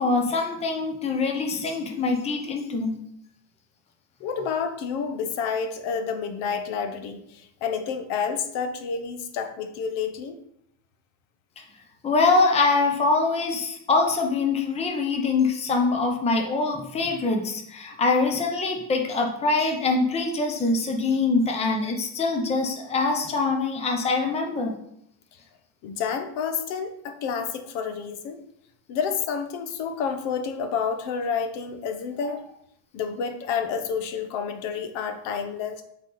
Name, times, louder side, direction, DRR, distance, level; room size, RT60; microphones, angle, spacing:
voice 1, 0.0-3.0 12.0-24.7, left 3 dB, 15° left, 3 dB, 0.7 m, -24 dB
voice 2, 4.2-10.4 25.8-28.4 28.9-32.4 32.9-35.8, left 6 dB, 70° left, 8 dB, 1.0 m, -29 dB
8.0 x 4.0 x 3.9 m, 0.73 s
cardioid pair, 155°, 49 cm